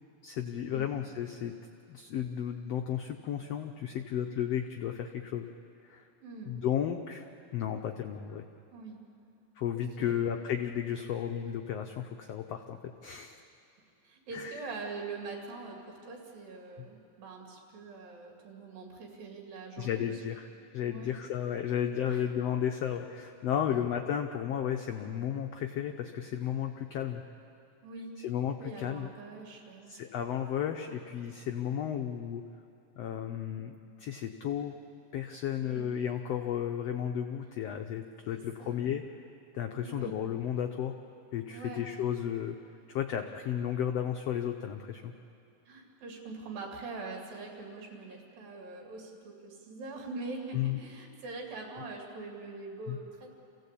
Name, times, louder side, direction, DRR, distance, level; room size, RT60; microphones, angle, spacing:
voice 1, 0.2-1.5 1.9-5.5 5.8-6.1 6.5-7.2 7.5-8.4 9.6-13.4 14.3-14.7 19.8-27.2 28.2-29.1 29.9-32.4 33.0-34.7 35.1-39.0 39.5-40.9 41.3-42.6 42.9-45.1 50.5-50.8 52.9-53.0, left 9 dB, 90° left, 5 dB, 1.4 m, -33 dB
voice 2, 6.2-6.6 8.7-9.0 9.7-10.1 14.0-20.2 20.8-21.1 22.1-22.3 23.7-23.8 27.8-28.1 28.6-29.9 35.6-35.9 38.3-38.8 39.8-40.1 41.5-41.8 45.7-53.3, right 3 dB, 85° right, 0 dB, 4.4 m, -43 dB
28.0 x 16.5 x 8.4 m, 2.7 s
omnidirectional pair, 4.0 m